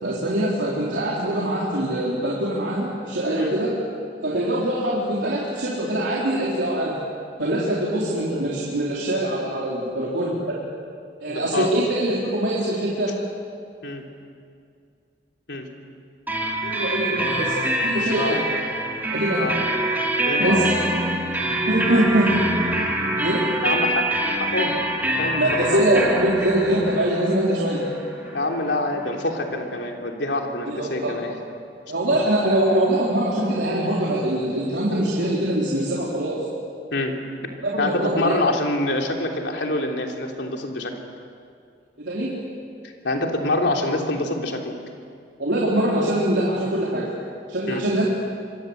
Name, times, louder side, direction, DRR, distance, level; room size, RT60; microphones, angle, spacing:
voice 1, 0.0-3.8 4.2-7.0 7.4-10.6 11.2-13.1 16.6-18.4 19.1-19.4 20.4-20.8 21.7-22.3 23.2-23.4 25.4-27.8 30.7-31.3 31.9-36.4 37.6-38.4 42.1-42.3 45.4-47.1 47.5-48.0, right 1 dB, 80° right, -5 dB, 4.0 m, -23 dB
voice 2, 11.3-11.7 13.8-14.0 15.5-15.7 18.1-18.4 19.4-19.6 20.3-20.6 23.6-24.8 25.1-25.9 28.3-31.3 36.9-37.1 37.8-40.9 42.8-44.7 47.7-47.8, left 2 dB, 80° left, 2 dB, 3.4 m, -26 dB
sound 1, 16.3-29.8, right 1 dB, 10° right, 2.9 m, -25 dB
26.5 x 22.5 x 8.1 m, 2.3 s
head